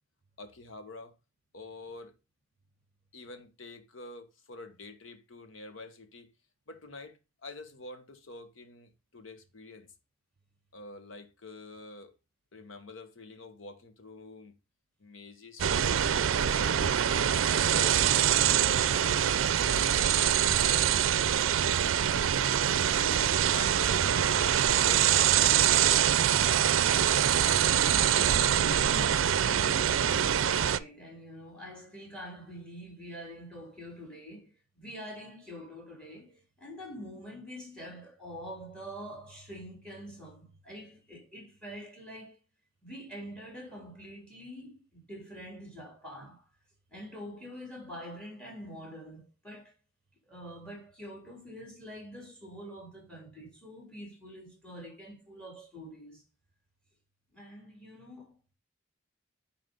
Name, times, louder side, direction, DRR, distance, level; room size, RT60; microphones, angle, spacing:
voice 1, 0.4-1.1 1.5-2.2 3.1-6.3 6.7-9.9 10.7-12.1 12.5-14.5 15.0-16.0 16.4-19.1 19.7-21.8 22.7-26.3, left 2 dB, 80° left, 1.3 m, -46 dB
sound 1, 15.6-30.8, right 9 dB, 80° right, 0.4 m, -24 dB
voice 2, 28.8-42.4 42.8-46.4 46.9-49.7 50.3-56.2 57.3-58.3, equal, 5° left, 3.4 m, -45 dB
9.5 x 4.3 x 3.8 m
head